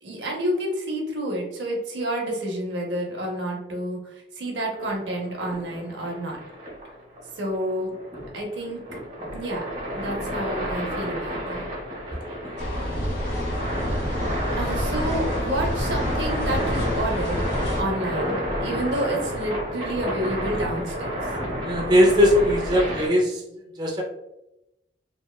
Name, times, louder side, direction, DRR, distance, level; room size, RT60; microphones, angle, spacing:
voice 1, 0.0-6.4 7.3-8.0 8.3-8.8 9.3-9.7 9.9-11.6 14.3-17.4 17.8-21.2, right 1 dB, 85° right, 0 dB, 0.7 m, -29 dB
sound 1, 4.7-23.1, equal, 45° right, 0.8 m, -30 dB
sound 2, 12.6-17.8, equal, 70° left, 1.0 m, -28 dB
voice 2, 21.6-23.3 23.8-24.0, left 1 dB, 25° right, -2 dB, 0.3 m, -19 dB
2.8 x 2.1 x 2.2 m, 0.90 s
head